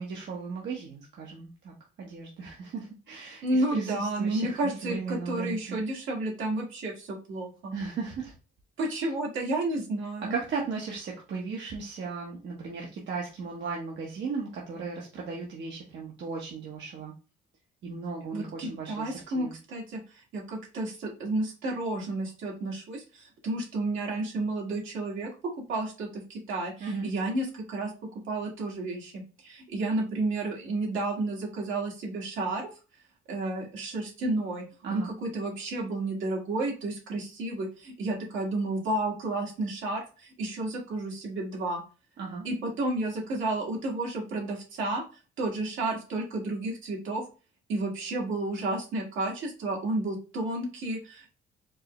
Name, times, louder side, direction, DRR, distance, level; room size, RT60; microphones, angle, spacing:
voice 1, 0.0-5.8 7.7-8.3 8.9-9.0 10.3-17.1 17.8-19.5 26.8-27.1 34.8-35.1 42.2-42.5, right 4 dB, 65° right, -2 dB, 0.9 m, -36 dB
voice 2, 3.4-7.7 8.8-10.3 18.3-25.3 25.7-27.9 28.3-32.7 33.3-34.6 34.9-41.8 42.4-45.0 45.4-47.2 47.7-51.3, right 2 dB, 80° right, -1 dB, 1.5 m, -31 dB
4.5 x 2.1 x 2.9 m, 0.33 s
cardioid pair, 90°, 20 cm